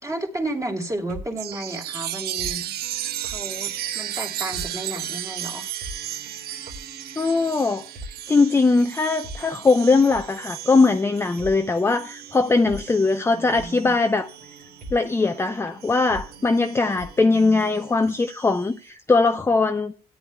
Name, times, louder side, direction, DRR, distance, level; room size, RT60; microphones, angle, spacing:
voice 1, 0.0-2.6 3.3-5.7 13.2-13.9 17.2-17.8, right 1 dB, 20° right, 3.0 m, -33 dB
sound 1, 1.0-18.2, right 1 dB, 50° right, 2.6 m, -44 dB
Chime, 1.4-15.4 15.8-18.6, right 12 dB, 65° right, 0.8 m, -35 dB
voice 2, 7.2-7.8 8.3-14.3 14.9-19.9, left 3 dB, 15° left, 0.6 m, -20 dB
17.0 x 10.5 x 2.3 m
cardioid pair, 110°, 17 cm